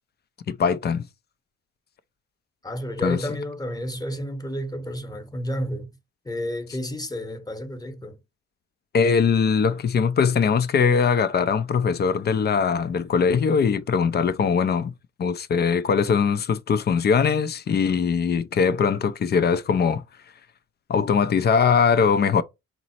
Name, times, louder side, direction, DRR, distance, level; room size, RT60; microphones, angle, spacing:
voice 1, 0.5-1.1 3.0-3.2 8.9-14.9 15.2-20.0 20.9-22.4, left 6 dB, 35° left, 0.4 m, -21 dB
voice 2, 2.6-6.0 6.2-8.2, equal, 10° left, 0.9 m, -31 dB
3.9 x 2.0 x 4.2 m
cardioid pair, 90°, 30 cm